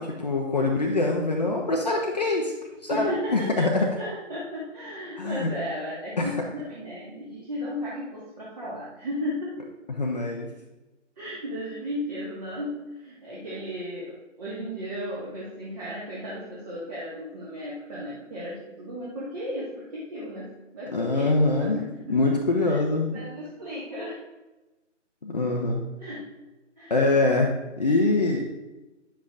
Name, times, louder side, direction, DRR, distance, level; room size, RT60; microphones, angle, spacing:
voice 1, 0.0-2.5 2.8-3.9 5.2-5.5 6.2-6.3 9.9-10.5 20.9-21.8 22.1-23.2 25.2-25.8 26.9-28.4, left 2 dB, 35° left, 0 dB, 0.8 m, -24 dB
voice 2, 2.9-3.7 4.0-9.6 11.2-22.4 22.7-22.8 23.1-24.2 26.0-26.2 26.8-27.0, equal, 30° right, -7 dB, 1.7 m, -35 dB
10.0 x 7.8 x 2.5 m, 1.1 s
figure-of-eight pair, 150°, 37 cm